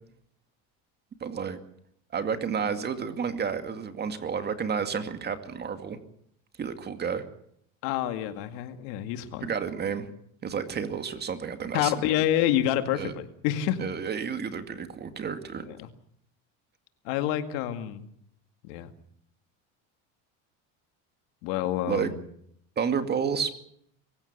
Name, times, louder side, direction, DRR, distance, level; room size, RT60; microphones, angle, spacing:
voice 1, 1.2-1.6 2.1-6.0 6.6-7.2 9.4-10.1 10.4-11.9 12.9-13.1 13.8-15.7 21.9-22.1 22.8-23.5, right 6 dB, 30° right, 8 dB, 2.2 m, -30 dB
voice 2, 7.8-9.5 11.7-13.8 15.7-15.9 17.0-18.1 18.6-18.9 21.4-22.2, left 12 dB, 85° left, 9 dB, 2.2 m, -28 dB
24.0 x 15.5 x 8.3 m, 0.70 s
cardioid pair, 140°, 33 cm